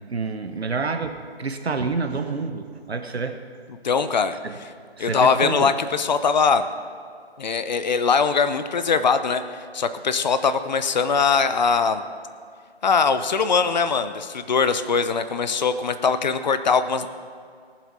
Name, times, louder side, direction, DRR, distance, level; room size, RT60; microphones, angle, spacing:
voice 1, 0.1-3.4 4.4-4.5 5.0-5.7, right 4 dB, 75° right, 7 dB, 1.2 m, -28 dB
voice 2, 3.8-4.3 5.0-6.7 7.4-12.0 12.8-17.1, left 5 dB, 45° left, 11 dB, 0.7 m, -21 dB
18.5 x 7.5 x 6.1 m, 2.1 s
figure-of-eight pair, 145°, 32 cm